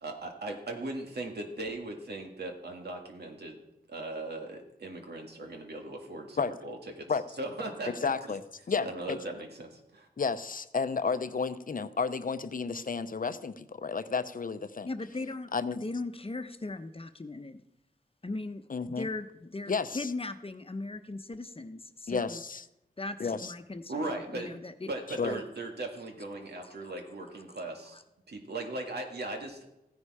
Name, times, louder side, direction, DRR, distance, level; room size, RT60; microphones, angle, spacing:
voice 1, 0.0-3.6 3.9-7.1 7.4-8.1 8.8-10.1 23.9-24.6 24.9-28.0 28.3-29.7, right 2 dB, 85° right, 2 dB, 2.0 m, -38 dB
voice 2, 8.0-8.4 8.7-9.2 10.2-14.9 15.5-15.8 18.7-19.1 19.7-20.1 22.1-22.6 23.2-23.5 25.2-25.4, left 5 dB, 60° left, 12 dB, 0.7 m, -32 dB
voice 3, 14.9-15.5 15.8-17.6 18.2-18.6 19.0-22.4 23.0-24.9 25.3-25.4 26.6-26.7 27.9-28.0, left 2 dB, 35° left, 9 dB, 0.9 m, -38 dB
15.0 x 9.9 x 4.9 m, 0.87 s
cardioid pair, 50°, 16 cm